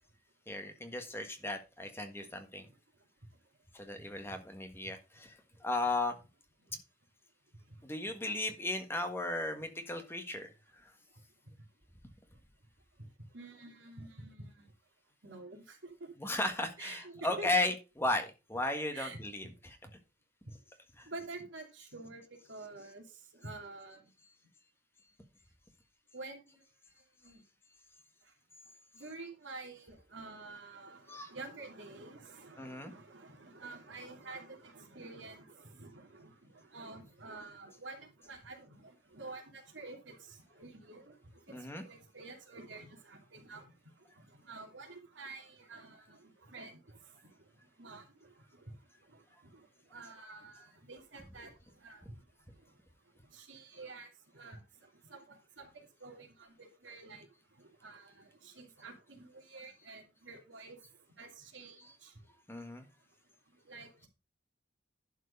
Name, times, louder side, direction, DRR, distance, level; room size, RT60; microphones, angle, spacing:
voice 1, 0.5-2.7 3.7-6.2 7.8-10.9 16.2-19.8 21.0-21.1 24.2-24.3 27.3-27.4 31.1-31.3 32.6-32.9 41.5-41.8 61.8-61.9 62.5-62.9, left 2 dB, 15° left, 1.5 m, -36 dB
voice 2, 7.5-7.9 13.0-13.1 13.3-14.7 15.2-16.1 16.8-17.5 18.9-19.2 20.5-20.6 21.0-24.1 26.1-26.6 27.2-27.4 28.2-28.3 28.9-52.2 52.5-52.8 53.2-62.2 62.6-62.7 63.5-64.1, right 3 dB, 90° right, 2.7 m, -50 dB
11.0 x 4.7 x 5.3 m
head